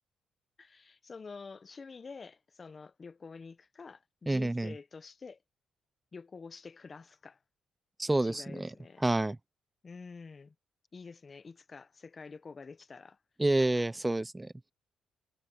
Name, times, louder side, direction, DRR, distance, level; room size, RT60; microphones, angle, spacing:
voice 1, 0.6-5.4 6.1-7.4 8.2-9.1 9.8-10.5 10.9-13.2 13.6-13.9, left 4 dB, 35° left, 1.1 m, -48 dB
voice 2, 4.3-4.7 8.0-8.7 9.0-9.4 13.4-14.5, right 2 dB, 15° right, 0.6 m, -28 dB
cardioid pair, 90°, 0 cm